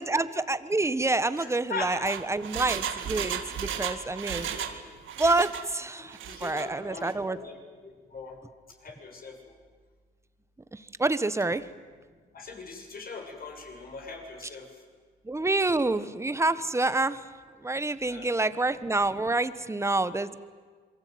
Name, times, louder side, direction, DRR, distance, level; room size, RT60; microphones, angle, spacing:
voice 1, 0.0-4.5 5.2-7.4 11.0-11.6 15.3-17.2 17.6-20.3, right 2 dB, 15° right, 14 dB, 1.4 m, -27 dB
voice 2, 1.4-2.1 4.5-4.9 6.2-7.6 8.1-8.4 8.8-9.4 12.3-14.7 18.1-18.3, left 4 dB, 50° left, 2 dB, 7.1 m, -40 dB
Engine, 1.8-4.8 5.0-5.7 6.1-6.7 7.0-7.1, right 9 dB, 80° right, 2.2 m, -34 dB
27.0 x 23.0 x 9.5 m, 1.5 s
cardioid pair, 90°, 20 cm